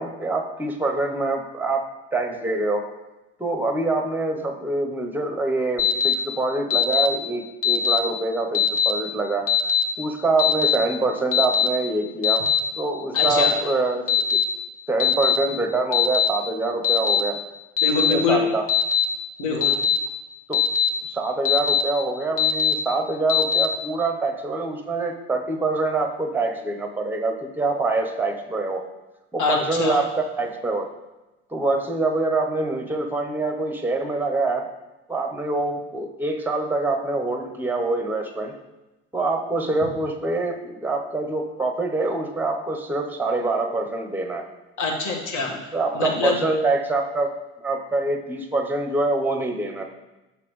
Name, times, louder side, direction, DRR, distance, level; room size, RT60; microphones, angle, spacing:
voice 1, 0.0-2.8 3.4-9.5 10.0-12.5 12.8-14.4 14.9-17.4 17.9-18.7 20.5-20.6 21.1-28.9 29.3-30.9 31.5-34.7 35.1-38.5 39.1-44.5 45.5-47.3 47.6-49.8, right 2 dB, 5° right, 4 dB, 0.8 m, -25 dB
Alarm, 5.8-6.1 6.7-7.1 7.6-8.0 8.5-8.9 9.5-9.8 10.4-10.7 11.3-11.7 12.2-12.6 13.2-13.5 14.1-14.4 15.0-15.4 15.9-16.3 16.8-17.2 17.8-18.1 18.7-19.0 19.6-20.0 20.5-20.9 21.4-21.8 22.4-22.7 23.3-23.7, left 8 dB, 40° left, 1.1 m, -20 dB
voice 2, 13.1-13.5 17.8-18.4 19.4-19.8 29.4-30.0 44.8-45.5 45.9-46.4, left 4 dB, 60° left, 0 dB, 1.5 m, -24 dB
5.9 x 5.6 x 3.1 m, 1.0 s
hypercardioid pair, 70°, 34 cm